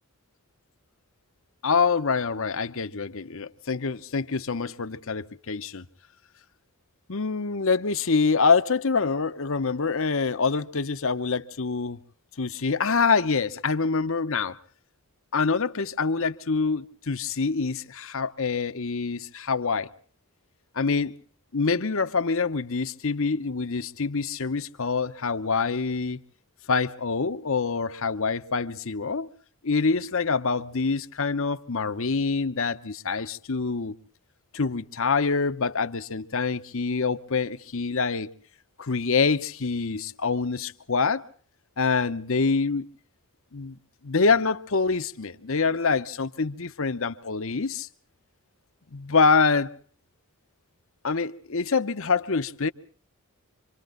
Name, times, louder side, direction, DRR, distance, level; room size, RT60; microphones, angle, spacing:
voice 1, 1.6-5.8 7.1-12.0 12.4-14.6 15.3-19.9 20.7-21.1 21.5-26.2 26.7-29.3 29.6-34.0 34.5-38.3 38.8-41.3 41.8-42.9 43.5-43.7 44.0-47.9 48.9-49.7 51.0-52.7, left 4 dB, 65° left, 0.9 m, -25 dB
26.0 x 25.5 x 3.9 m
head